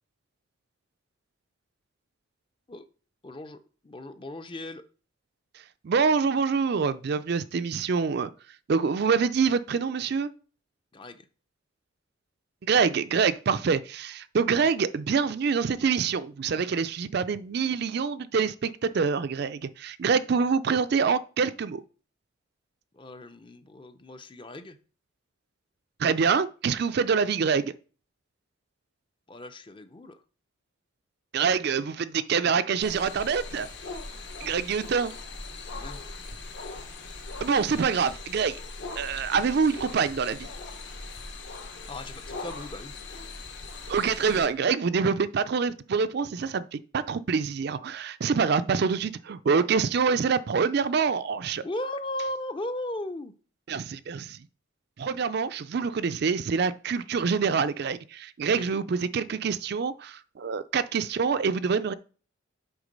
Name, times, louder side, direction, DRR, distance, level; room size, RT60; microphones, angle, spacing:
voice 1, 3.2-3.6 3.8-4.8 10.9-11.2 14.6-14.7 22.9-24.8 29.3-30.2 35.7-36.0 41.9-42.9 51.6-53.3 58.5-58.7, left 1 dB, 25° left, 0.5 m, -37 dB
voice 2, 5.8-8.3 8.7-10.3 12.6-21.8 26.0-27.7 31.3-33.7 34.4-35.1 37.4-38.6 39.0-40.5 43.9-51.6 53.7-54.4 55.0-61.9, right 5 dB, 55° right, 0.4 m, -26 dB
sound 1, 32.8-44.5, left 3 dB, 60° left, 1.2 m, -40 dB
8.0 x 3.7 x 5.2 m
head